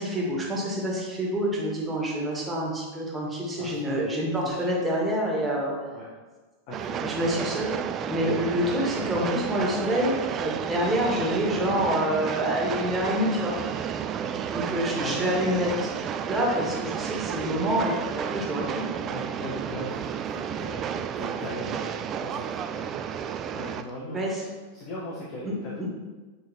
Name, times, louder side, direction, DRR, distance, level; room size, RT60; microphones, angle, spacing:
voice 1, 0.0-5.7 7.0-7.7 8.0-13.5 14.5-18.8 24.1-24.4 25.4-25.8, equal, 15° right, -3 dB, 1.7 m, -27 dB
voice 2, 3.6-4.1 4.4-4.5 5.9-6.2 6.7-7.3 14.2-14.5 15.0-15.3 19.1-22.9 23.5-24.5 24.7-25.8, left 1 dB, 45° left, -5 dB, 1.3 m, -39 dB
Train, 6.7-23.8, right 8 dB, 30° right, 0.3 m, -32 dB
8.0 x 4.6 x 3.0 m, 1.3 s
figure-of-eight pair, 90°, 0 cm